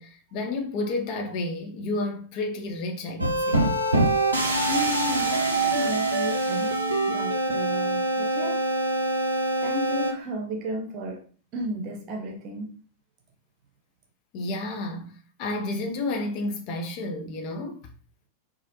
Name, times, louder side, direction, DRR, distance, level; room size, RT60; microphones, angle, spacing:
voice 1, 0.0-3.8 14.3-17.9, left 2 dB, 40° left, 0.5 m, -31 dB
sound 1, 3.2-10.1, right 2 dB, 85° right, 0.4 m, -24 dB
voice 2, 4.7-8.7 9.6-11.3 11.5-12.8, right 1 dB, 35° right, 0.7 m, -33 dB
2.3 x 2.1 x 2.7 m
figure-of-eight pair, 90°, 0 cm